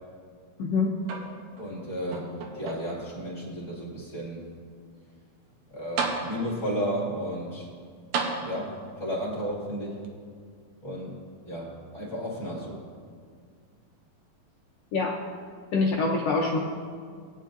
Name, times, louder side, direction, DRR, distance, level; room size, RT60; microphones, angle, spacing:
voice 1, 0.6-0.9 14.9-15.2 15.7-16.6, left 3 dB, 85° left, -1 dB, 1.4 m, -24 dB
sound 1, 1.0-1.7 2.1-3.1 3.8-3.9 5.5-5.6 6.0-6.7 8.1-9.0 10.0-10.1, right 4 dB, 90° right, 2.8 m, -33 dB
voice 2, 1.6-4.5 5.7-7.7 8.4-10.0 10.8-11.2 11.5-12.8, equal, 25° left, -5 dB, 1.9 m, -33 dB
19.0 x 9.1 x 2.6 m, 2.1 s
omnidirectional pair, 3.9 m